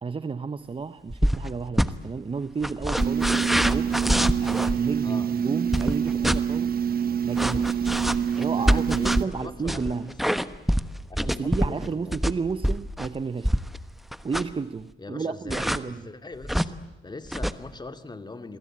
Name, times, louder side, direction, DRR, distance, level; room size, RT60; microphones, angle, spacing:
voice 1, 0.0-6.8 7.2-7.8 8.4-10.2 11.2-13.6 14.2-16.1, right 5 dB, 25° right, 0.9 m, -32 dB
sound 1, 1.1-1.5 1.7-1.9 2.6-4.8 5.7-6.4 7.4-13.8 14.1-14.6 15.5-15.8 16.4-16.7 17.3-17.5, equal, ahead, 1.2 m, -25 dB
sound 2, 3.0-9.2, right 8 dB, 50° right, 1.2 m, -26 dB
voice 2, 8.6-10.4 11.1-12.2 15.0-16.7 17.0-18.6, left 3 dB, 20° left, 2.3 m, -41 dB
28.0 x 22.0 x 8.9 m
cardioid pair, 90°, 20 cm